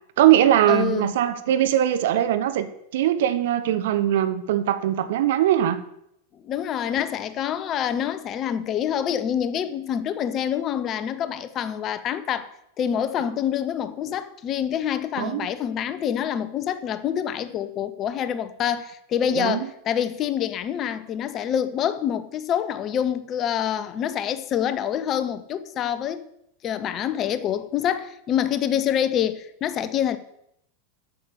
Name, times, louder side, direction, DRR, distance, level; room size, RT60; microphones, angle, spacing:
voice 1, 0.2-2.7 2.9-5.8 15.2-15.5 19.3-19.7, right 11 dB, 55° right, 0.8 m, -21 dB
voice 2, 0.7-1.1 6.4-26.3 26.6-30.2, left 9 dB, 30° left, 0.7 m, -26 dB
8.5 x 6.9 x 6.8 m
figure-of-eight pair, 90°, 0 cm